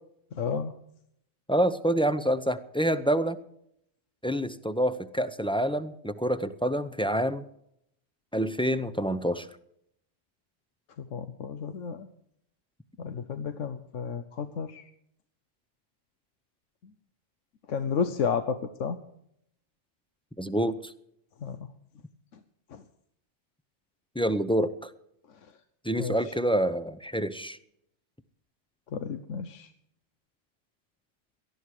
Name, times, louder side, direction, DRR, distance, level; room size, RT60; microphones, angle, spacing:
voice 1, 0.3-0.7 11.0-12.1 13.0-14.8 17.7-19.0 21.4-21.7 22.7-22.8 26.0-26.2 28.9-29.7, left 6 dB, 80° left, 10 dB, 1.2 m, -32 dB
voice 2, 1.5-3.4 4.2-7.4 8.3-9.5 20.4-20.9 24.2-24.9 25.8-27.6, right 1 dB, 5° left, 11 dB, 0.5 m, -27 dB
19.0 x 13.0 x 4.9 m, 0.74 s
omnidirectional pair, 1.3 m